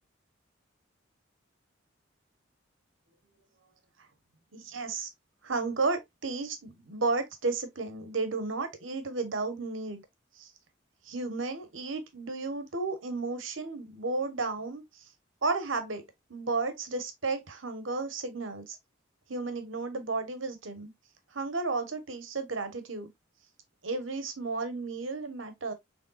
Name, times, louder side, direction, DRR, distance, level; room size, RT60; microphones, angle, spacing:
voice 1, 4.5-5.1 5.4-10.0 10.4-10.5 11.0-15.0 15.4-16.0 16.3-18.8 19.3-20.9 21.3-23.1 23.8-25.7, right 3 dB, 75° right, 1.1 m, -33 dB
6.6 x 3.4 x 2.3 m
head